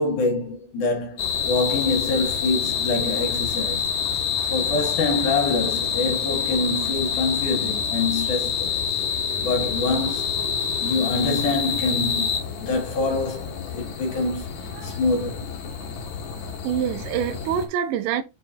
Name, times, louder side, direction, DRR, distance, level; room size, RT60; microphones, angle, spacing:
voice 1, 0.0-3.8 4.5-8.8 9.4-10.3 10.8-14.5 14.8-15.5, left 3 dB, 55° left, 2.8 m, -25 dB
sound 1, 1.2-17.7, left 7 dB, 70° left, 1.8 m, -27 dB
voice 2, 8.9-9.5 10.0-11.5 12.1-12.2 14.7-15.0 16.6-18.2, right 9 dB, 85° right, 3.1 m, -29 dB
7.5 x 4.6 x 3.0 m
omnidirectional pair, 5.2 m